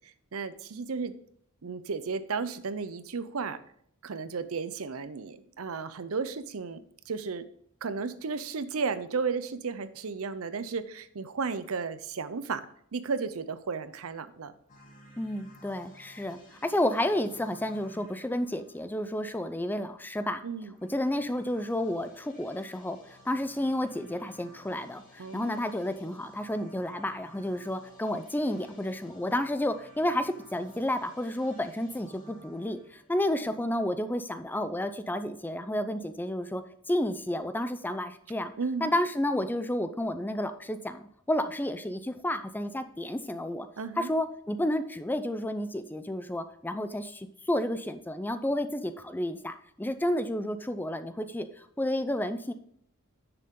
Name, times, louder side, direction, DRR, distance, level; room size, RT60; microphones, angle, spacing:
voice 1, 0.3-1.1 1.6-3.6 4.0-6.8 7.1-7.5 7.8-12.6 12.9-14.5 20.4-20.7 25.2-25.5 38.6-38.9 43.8-44.1, right 5 dB, 75° right, 13 dB, 0.6 m, -33 dB
sound 1, 14.7-19.5 20.7-33.7, left 1 dB, 40° left, 2.2 m, -55 dB
voice 2, 15.2-20.4 20.9-38.5 38.8-43.7 44.0-52.5, left 1 dB, 10° left, 10 dB, 0.5 m, -31 dB
9.8 x 6.8 x 3.7 m, 0.67 s
head